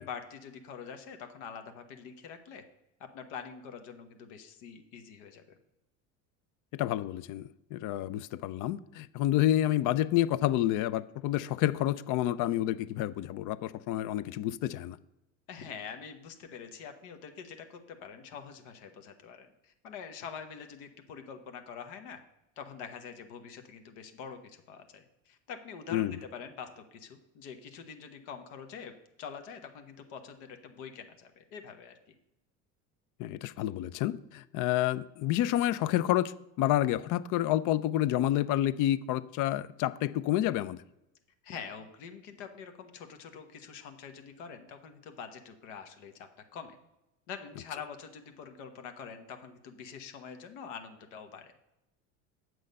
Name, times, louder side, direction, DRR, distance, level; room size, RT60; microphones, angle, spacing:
voice 1, 0.0-2.6 3.1-5.4 15.5-22.2 22.6-28.9 29.2-31.9 41.4-46.8 47.3-51.5, left 6 dB, 75° left, 1.2 m, -45 dB
voice 2, 6.7-15.0 25.9-26.2 33.2-40.8, left 13 dB, 55° left, 0.5 m, -29 dB
7.8 x 6.4 x 5.3 m
supercardioid pair, 95°, 37 cm